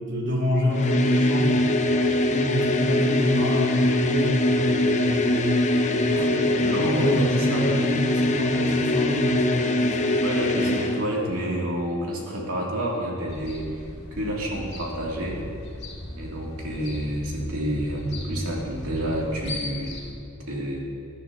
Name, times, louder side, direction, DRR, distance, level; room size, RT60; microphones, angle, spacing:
voice 1, 0.0-1.7 2.3-6.5 6.8-10.7, equal, 55° right, -3 dB, 2.7 m, -27 dB
sound 1, 0.7-11.0, left 1 dB, 35° left, 0.7 m, -23 dB
voice 2, 6.6-7.7 10.2-13.7 14.1-15.4 16.2-19.9 20.5-20.9, right 1 dB, 85° right, -3 dB, 2.6 m, -29 dB
sound 2, 13.3-20.1, left 1 dB, 55° left, 2.4 m, -36 dB
17.5 x 11.5 x 2.8 m, 2.5 s
head